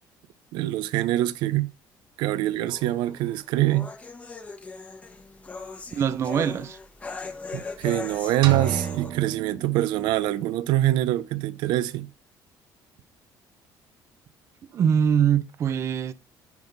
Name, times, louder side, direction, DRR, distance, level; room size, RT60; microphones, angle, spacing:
voice 1, 0.5-1.7 2.2-3.9 7.5-12.1, right 15 dB, 90° right, 0.6 m, -24 dB
sound 1, 2.7-9.1, left 4 dB, 20° left, 1.0 m, -39 dB
voice 2, 5.9-6.8 14.7-16.1, right 8 dB, 40° right, 0.5 m, -23 dB
sound 2, 8.4-10.4, right 8 dB, 65° right, 1.0 m, -32 dB
10.5 x 3.6 x 3.9 m
cardioid pair, 155°, 8 cm